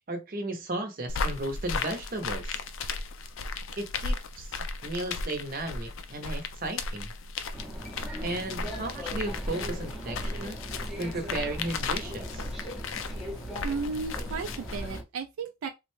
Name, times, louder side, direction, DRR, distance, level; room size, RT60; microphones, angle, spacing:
voice 1, 0.1-2.5 3.8-7.1 8.2-10.6 11.0-12.5, right 2 dB, 40° right, 0.7 m, -35 dB
sound 1, 1.1-15.0, left 3 dB, 65° left, 0.4 m, -35 dB
sound 2, 7.5-15.0, equal, ahead, 0.6 m, -39 dB
voice 2, 13.6-15.7, right 4 dB, 70° right, 0.4 m, -34 dB
3.5 x 2.1 x 3.1 m
head